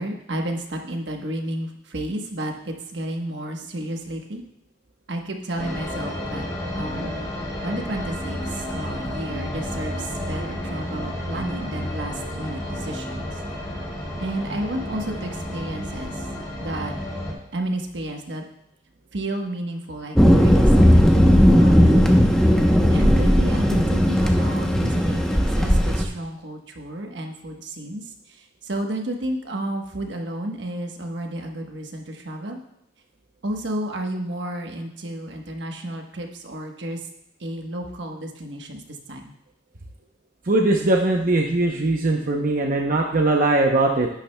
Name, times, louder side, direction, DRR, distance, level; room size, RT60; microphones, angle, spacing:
voice 1, 0.0-4.4 5.1-6.4 6.7-7.2 7.6-13.3 14.2-16.2 16.6-16.9 17.5-18.4 19.1-22.6 22.9-28.0 28.6-32.6 33.4-37.0 37.4-38.8 39.1-39.3, right 1 dB, 70° right, 3 dB, 1.2 m, -31 dB
sound 1, 5.6-17.3, left 1 dB, 20° left, 2.5 m, -31 dB
Thunder, 20.1-26.1, equal, 5° left, 0.9 m, -16 dB
voice 2, 40.5-44.1, right 2 dB, 50° right, 1 dB, 0.8 m, -20 dB
11.0 x 10.0 x 2.3 m, 0.84 s
head